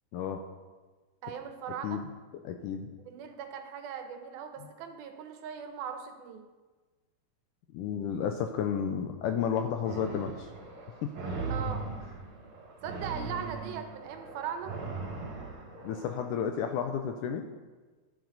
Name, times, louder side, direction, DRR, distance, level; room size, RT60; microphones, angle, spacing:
voice 1, 1.2-2.0 3.0-6.4 11.5-11.9 12.8-14.7, right 7 dB, 85° right, 6 dB, 2.8 m, -39 dB
voice 2, 2.4-2.9 7.7-10.5 11.0-11.1 15.8-17.5, left 8 dB, 80° left, 5 dB, 1.9 m, -32 dB
sound 1, 9.9-16.3, right 4 dB, 50° right, 2.9 m, -39 dB
11.5 x 10.5 x 4.0 m, 1.3 s
omnidirectional pair, 4.2 m